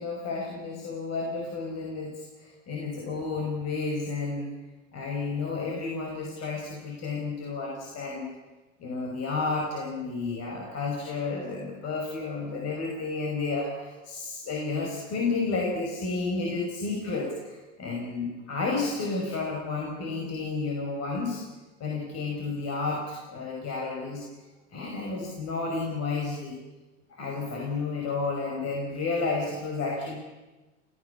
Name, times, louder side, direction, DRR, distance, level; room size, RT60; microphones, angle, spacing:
voice 1, 0.0-4.5 4.9-8.3 8.8-21.4 21.8-24.2 24.7-26.6 27.1-30.2, left 3 dB, 40° left, -1 dB, 5.9 m, -31 dB
29.5 x 16.0 x 7.2 m, 1.1 s
hypercardioid pair, 100°, 38 cm